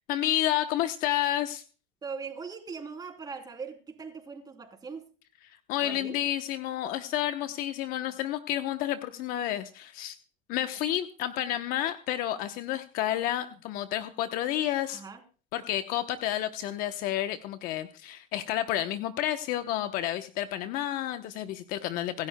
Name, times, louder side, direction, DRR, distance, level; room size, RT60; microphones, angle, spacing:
voice 1, 0.1-1.6 5.7-10.2 10.5-15.0 15.5-22.3, left 12 dB, 60° left, 9 dB, 0.9 m, -30 dB
voice 2, 2.0-5.1 5.8-6.1 14.9-15.2, right 5 dB, 25° right, 5 dB, 3.1 m, -40 dB
25.5 x 11.5 x 2.2 m, 0.37 s
supercardioid pair, 115°, 16 cm